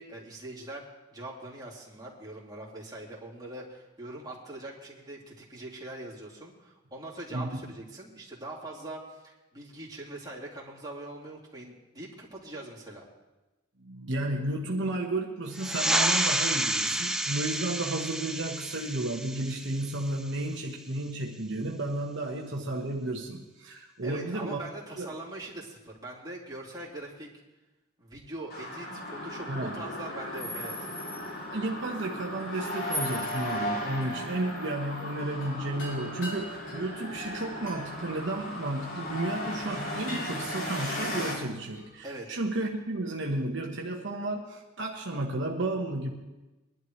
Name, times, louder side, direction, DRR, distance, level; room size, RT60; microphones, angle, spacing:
voice 1, 0.0-13.0 24.0-27.3 28.0-30.8 42.0-42.4, right 1 dB, 20° right, -6 dB, 3.0 m, -42 dB
voice 2, 7.3-7.7 13.8-24.6 25.0-25.1 29.5-29.8 31.5-46.1, right 2 dB, 65° right, 0 dB, 1.2 m, -33 dB
sound 1, 15.5-20.6, right 1 dB, 5° right, 0.5 m, -30 dB
sound 2, 28.5-41.3, left 1 dB, 50° left, 4.8 m, -36 dB
sound 3, 35.4-39.1 39.6-39.8 40.1-42.0, left 1 dB, 70° left, 3.5 m, -45 dB
22.0 x 11.5 x 3.2 m, 1.1 s
head